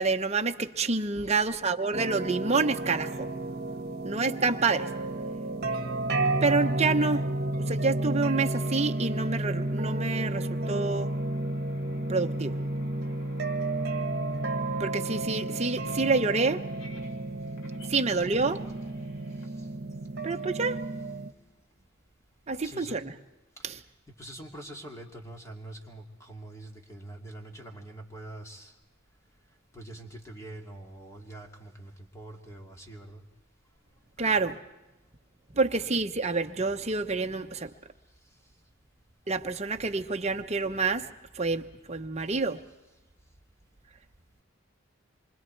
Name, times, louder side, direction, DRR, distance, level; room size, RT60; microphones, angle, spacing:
voice 1, 0.0-3.3 4.0-4.9 6.4-7.3 7.7-11.1 12.1-12.6 14.8-16.7 17.9-18.7 20.2-20.8 22.5-23.1 23.6-23.7 34.2-34.6 35.5-37.7 39.3-41.1 41.3-42.6, right 3 dB, 30° right, 0.9 m, -28 dB
voice 2, 1.2-1.6 19.5-19.7 22.5-23.0 23.6-23.7 24.2-28.7 29.7-33.3, right 1 dB, 15° left, 2.5 m, -45 dB
sound 1, 1.9-21.3, right 2 dB, 50° right, 1.5 m, -32 dB
Radio Noise, 8.3-20.4, left 3 dB, 75° left, 3.4 m, -52 dB
27.5 x 24.5 x 4.6 m
head